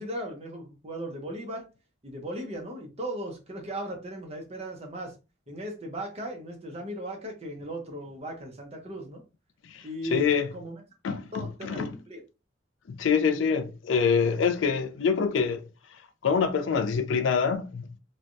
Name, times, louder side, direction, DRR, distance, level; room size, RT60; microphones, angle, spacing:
voice 1, 0.0-1.7 2.0-5.1 5.5-9.2 9.8-10.8 11.3-12.2, right 1 dB, 35° right, 0.8 m, -37 dB
voice 2, 9.6-10.5 11.0-12.0 12.9-15.7 16.2-17.9, left 6 dB, 80° left, 0.4 m, -26 dB
3.2 x 2.2 x 2.6 m
head